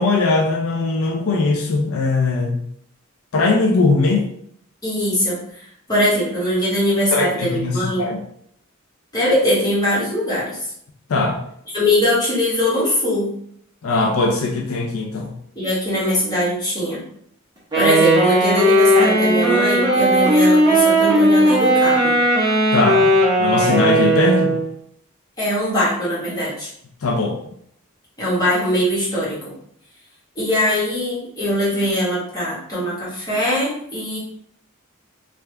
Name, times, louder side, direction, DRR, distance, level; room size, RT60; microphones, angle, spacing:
voice 1, 0.0-2.6 3.3-4.3 7.1-8.2 11.1-11.4 13.8-15.3 22.7-24.5 27.0-27.4, left 3 dB, 75° left, 1 dB, 0.5 m, -20 dB
voice 2, 4.8-8.1 9.1-10.7 11.7-13.3 15.5-17.0 17.7-22.1 25.4-26.7 28.2-29.4 30.3-34.2, left 1 dB, 20° left, -8 dB, 1.4 m, -21 dB
Wind instrument woodwind instrument, 17.7-24.7, right 1 dB, 20° right, 1.0 m, -16 dB
3.4 x 2.5 x 3.3 m, 0.69 s
head